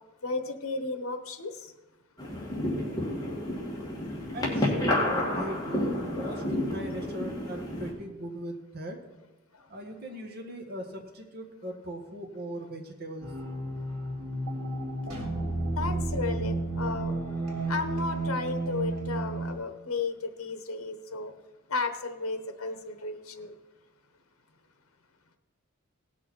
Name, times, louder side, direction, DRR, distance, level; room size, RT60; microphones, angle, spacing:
voice 1, 0.2-1.5 15.8-17.1 17.7-21.3 21.7-23.5, left 3 dB, 80° left, 8 dB, 0.9 m, -33 dB
sound 1, 2.2-7.9, left 1 dB, 20° left, 2.2 m, -30 dB
voice 2, 4.3-9.0 9.7-13.3, right 1 dB, 50° right, 3 dB, 1.5 m, -39 dB
sound 2, 13.2-19.5, right 2 dB, 85° right, 2.6 m, -32 dB
17.5 x 6.2 x 4.4 m, 1.1 s
head